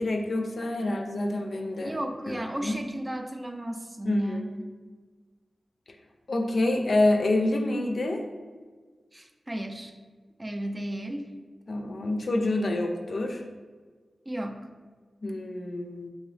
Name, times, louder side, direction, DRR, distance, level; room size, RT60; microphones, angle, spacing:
voice 1, 0.0-2.0 2.3-2.8 4.1-4.4 6.3-8.2 11.7-13.4 15.2-16.1, left 2 dB, 65° left, 3 dB, 0.4 m, -27 dB
voice 2, 1.8-4.6 9.1-9.9 10.4-11.3 14.3-14.7, right 1 dB, 25° right, 5 dB, 0.3 m, -34 dB
2.8 x 2.7 x 3.2 m, 1.4 s
cardioid pair, 60°, 0 cm